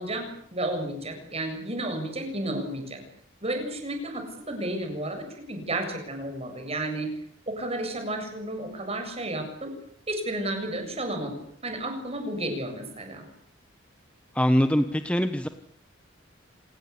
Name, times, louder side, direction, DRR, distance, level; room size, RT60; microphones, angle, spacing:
voice 1, 0.0-3.0 3.4-7.1 7.5-9.7 10.1-13.3, right 1 dB, 30° right, 6 dB, 7.4 m, -32 dB
voice 2, 14.3-15.5, equal, 5° left, 9 dB, 1.1 m, -23 dB
27.0 x 19.5 x 8.5 m, 0.63 s
head